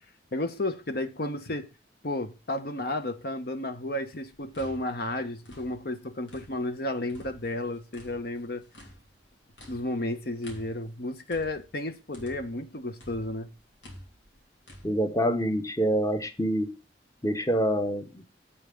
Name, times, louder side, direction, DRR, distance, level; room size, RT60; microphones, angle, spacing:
voice 1, 0.3-1.7 2.0-8.6 9.7-13.5, left 1 dB, 60° left, 1.0 m, -32 dB
sound 1, 4.3-6.8 7.1-12.7 13.0-14.9, equal, 90° left, 3.5 m, -50 dB
voice 2, 14.8-16.7 17.2-18.2, equal, 20° left, 0.9 m, -26 dB
8.3 x 5.6 x 6.9 m
head